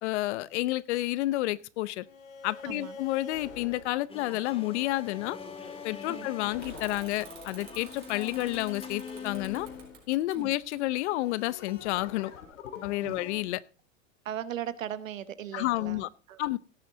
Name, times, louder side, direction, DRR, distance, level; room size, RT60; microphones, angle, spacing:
voice 1, 0.0-2.1 2.4-5.4 5.8-9.7 10.1-12.3 12.8-13.6 15.5-16.1 16.4-16.6, left 17 dB, 60° left, 20 dB, 0.8 m, -30 dB
sound 1, 2.0-10.6 11.1-13.4, left 6 dB, 85° left, 2.1 m, -45 dB
voice 2, 2.6-3.0 6.1-6.3 10.3-10.6 13.0-13.2 14.2-16.6, right 10 dB, 90° right, 15 dB, 1.2 m, -38 dB
sound 2, 4.1-9.3, left 3 dB, 15° left, 2.2 m, -47 dB
Bicycle / Mechanisms, 6.6-12.0, right 9 dB, 70° right, 4.2 m, -52 dB
17.0 x 7.7 x 3.9 m, 0.35 s
hypercardioid pair, 120°, 38 cm